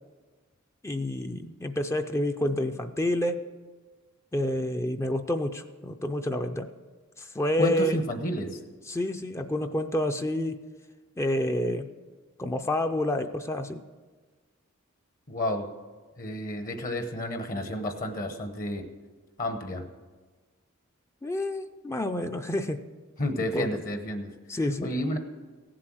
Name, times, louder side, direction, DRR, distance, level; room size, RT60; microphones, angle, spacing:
voice 1, 0.8-3.4 4.3-6.7 7.2-8.0 8.9-10.6 11.2-11.9 12.4-13.8 21.2-22.8 23.4-23.7 24.5-24.9, left 1 dB, 15° left, 7 dB, 0.4 m, -29 dB
voice 2, 7.6-8.6 15.3-15.7 16.2-18.9 19.4-19.9 23.2-24.3 24.8-25.2, left 1 dB, 40° left, 7 dB, 0.9 m, -30 dB
16.0 x 7.6 x 6.1 m, 1.4 s
head